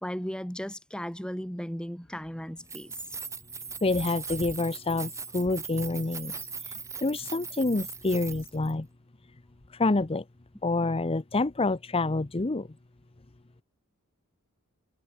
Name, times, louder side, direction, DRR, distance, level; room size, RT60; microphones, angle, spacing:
voice 1, 0.0-2.9, equal, 5° left, 2.0 m, -36 dB
Keys jangling, 2.6-8.7, right 5 dB, 15° right, 2.9 m, -40 dB
voice 2, 3.8-8.9 9.7-10.2 10.6-12.7, left 2 dB, 25° left, 0.7 m, -28 dB
head